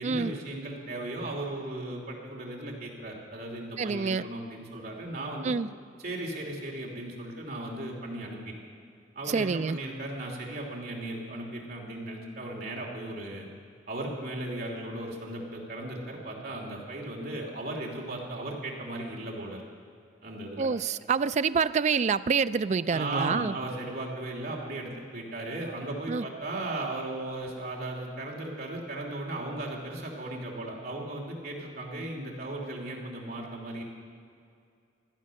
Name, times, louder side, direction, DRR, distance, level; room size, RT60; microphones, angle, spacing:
voice 1, 0.0-5.5 6.0-8.5 9.1-13.5 13.9-19.6 20.2-20.7 22.9-33.8, right 1 dB, 55° right, -1 dB, 3.0 m, -36 dB
voice 2, 3.8-4.2 5.4-5.7 9.3-9.8 20.6-23.6 26.1-26.2, right 5 dB, 40° right, 14 dB, 0.3 m, -27 dB
16.5 x 12.0 x 6.5 m, 2.4 s
head